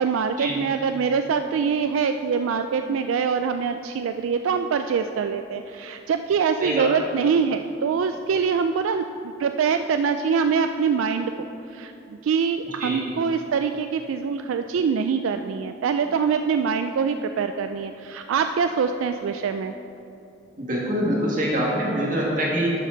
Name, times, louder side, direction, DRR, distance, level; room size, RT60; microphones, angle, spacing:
voice 1, 0.0-11.3 11.7-19.7, right 6 dB, 80° right, 8 dB, 0.3 m, -24 dB
voice 2, 12.6-13.0 20.6-22.7, equal, 40° right, -4 dB, 1.8 m, -25 dB
11.5 x 6.6 x 3.9 m, 2.8 s
head